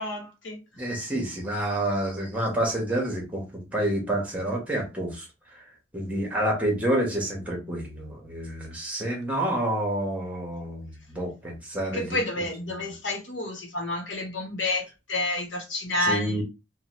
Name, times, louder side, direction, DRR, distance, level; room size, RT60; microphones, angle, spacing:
voice 1, 0.0-0.6 11.9-16.4, left 2 dB, 70° left, 1.0 m, -29 dB
voice 2, 0.8-5.3 5.5-5.6 5.9-12.5 16.0-16.4, right 1 dB, 10° right, 1.0 m, -28 dB
2.9 x 2.2 x 3.0 m
head